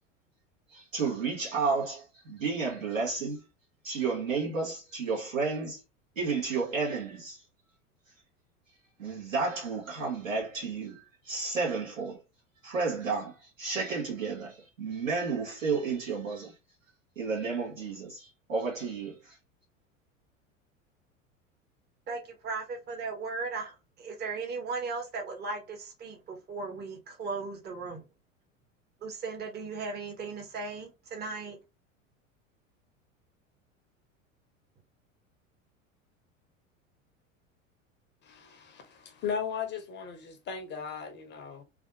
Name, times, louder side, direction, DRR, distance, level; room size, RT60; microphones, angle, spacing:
voice 1, 0.7-3.4 3.8-5.8 6.2-7.4 9.0-12.2 12.6-16.5 17.2-19.4, right 4 dB, 75° right, 1.7 m, -32 dB
voice 2, 22.1-28.0 29.0-31.6, right 4 dB, 25° right, 1.0 m, -37 dB
voice 3, 38.2-41.6, left 6 dB, 25° left, 0.7 m, -37 dB
3.3 x 2.4 x 2.7 m
figure-of-eight pair, 80°, 40 cm